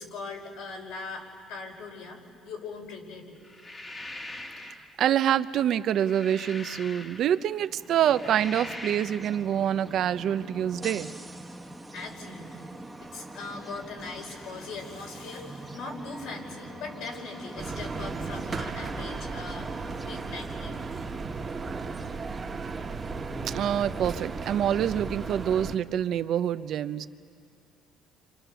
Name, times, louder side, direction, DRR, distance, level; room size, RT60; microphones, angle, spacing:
voice 1, 0.0-3.4 11.9-12.7 13.0-20.8, left 3 dB, 80° left, 0 dB, 5.1 m, -40 dB
sound 1, 3.4-4.9 5.7-7.5 8.0-9.4, left 1 dB, 20° left, 1.5 m, -42 dB
voice 2, 4.6-11.1 23.4-27.1, right 10 dB, 60° right, 12 dB, 0.7 m, -26 dB
bus air brakes and drive away, 7.7-25.8, right 2 dB, 10° right, 1.3 m, -44 dB
sound 2, 17.6-25.8, right 4 dB, 25° right, 1.5 m, -35 dB
29.5 x 26.5 x 6.9 m, 2.4 s
cardioid pair, 125°, 0 cm